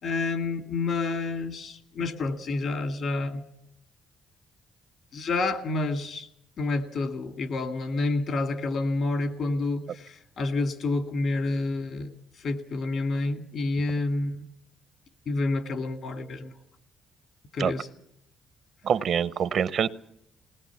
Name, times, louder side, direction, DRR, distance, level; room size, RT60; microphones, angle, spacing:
voice 1, 0.0-3.4 5.1-6.3 6.6-14.4 15.3-16.5 17.5-17.9, left 3 dB, 65° left, 7 dB, 2.0 m, -29 dB
voice 2, 18.8-19.9, right 7 dB, 65° right, 15 dB, 0.7 m, -25 dB
20.0 x 19.0 x 7.1 m, 0.77 s
cardioid pair, 90°, 0 cm